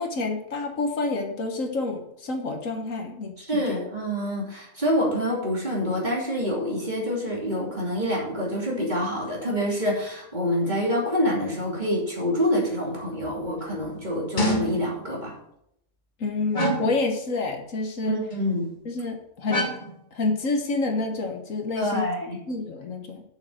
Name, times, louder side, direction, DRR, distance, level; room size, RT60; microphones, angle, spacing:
voice 1, 0.0-3.9 16.2-18.2 18.8-19.7 20.1-22.1 22.5-23.2, left 3 dB, 70° left, 4 dB, 1.7 m, -28 dB
voice 2, 3.4-15.3 18.1-18.7 21.7-22.4, equal, 30° right, -2 dB, 2.9 m, -26 dB
sound 1, 13.2-13.3 13.7-13.9 14.4-15.0 16.5-17.1 18.3-18.6 19.5-19.9 21.0-21.1, equal, 35° left, 1.6 m, -26 dB
7.1 x 6.5 x 7.7 m, 0.76 s
omnidirectional pair, 1.5 m